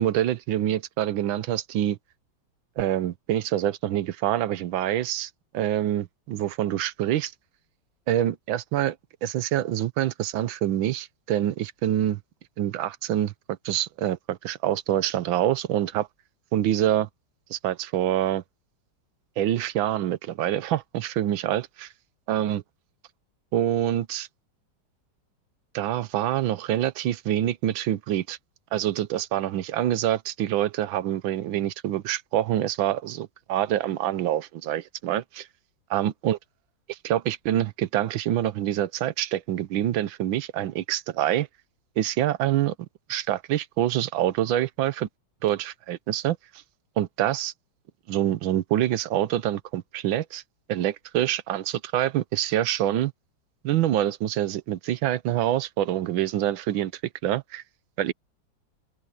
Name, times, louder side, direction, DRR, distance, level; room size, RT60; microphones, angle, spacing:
voice 1, 0.0-2.0 2.8-7.3 8.1-9.0 9.2-12.2 12.6-13.3 13.6-16.1 16.5-17.1 17.5-18.4 19.4-21.9 22.3-22.6 23.5-24.3 25.7-28.4 28.7-35.5 35.9-36.4 36.9-41.5 42.0-42.7 43.1-45.1 45.4-46.4 47.0-47.5 48.1-50.4 50.7-53.1 53.6-56.9 57.2-57.6 58.0-58.1, right 12 dB, 90° right, 1.6 m, -26 dB
open air
omnidirectional pair, 2.1 m